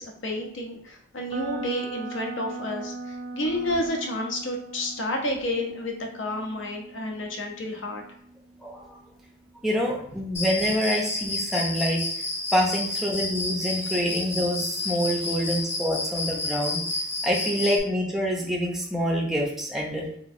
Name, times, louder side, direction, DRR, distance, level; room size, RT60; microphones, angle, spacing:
voice 1, 0.0-8.0, left 1 dB, 65° left, 1 dB, 0.7 m, -30 dB
sound 1, 1.3-9.2, right 3 dB, 85° right, 0.5 m, -39 dB
voice 2, 8.6-9.0 9.6-12.0 12.5-16.8 17.2-20.1, equal, ahead, -2 dB, 0.6 m, -26 dB
Cricket, 10.3-17.8, left 2 dB, 30° left, 0.8 m, -30 dB
3.5 x 2.9 x 2.6 m, 0.71 s
head